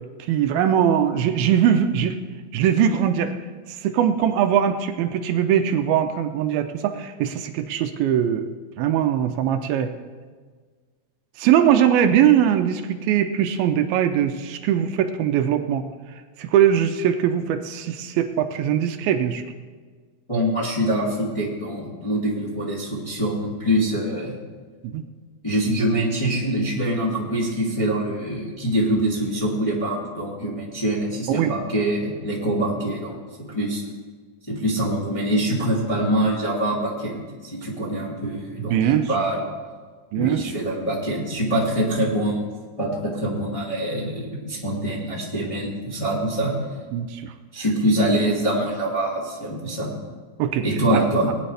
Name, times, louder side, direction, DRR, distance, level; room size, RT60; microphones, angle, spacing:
voice 1, 0.3-2.2 2.5-3.3 3.7-8.5 8.8-9.9 11.4-15.9 16.4-19.4 24.8-25.0 31.3-31.5 38.6-39.1 40.1-40.4 46.9-47.3 50.4-50.6 50.9-51.0, right 9 dB, 80° right, 7 dB, 2.4 m, -21 dB
voice 2, 20.3-24.4 25.4-33.2 33.5-33.8 34.5-39.4 40.2-42.4 42.8-46.5 47.5-49.9 50.6-51.3, right 1 dB, 10° left, -5 dB, 1.6 m, -24 dB
19.5 x 10.0 x 3.3 m, 1.5 s
omnidirectional pair, 4.4 m